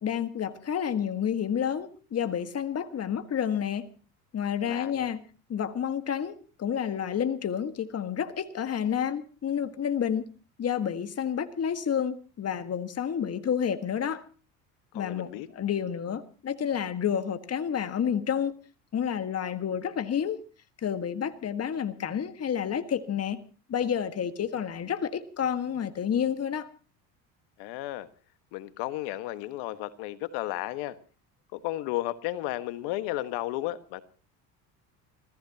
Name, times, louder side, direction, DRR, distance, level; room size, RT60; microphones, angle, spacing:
voice 1, 0.0-3.9 4.3-5.2 5.5-10.3 10.6-14.2 14.9-18.5 18.9-20.5 20.8-23.4 23.7-26.7, left 8 dB, 35° left, 10 dB, 1.7 m, -30 dB
voice 2, 4.6-5.1 14.9-15.5 27.6-28.1 28.5-31.0 31.5-34.0, left 15 dB, 75° left, 12 dB, 1.6 m, -33 dB
29.0 x 15.0 x 2.9 m, 0.36 s
hypercardioid pair, 75°, 41 cm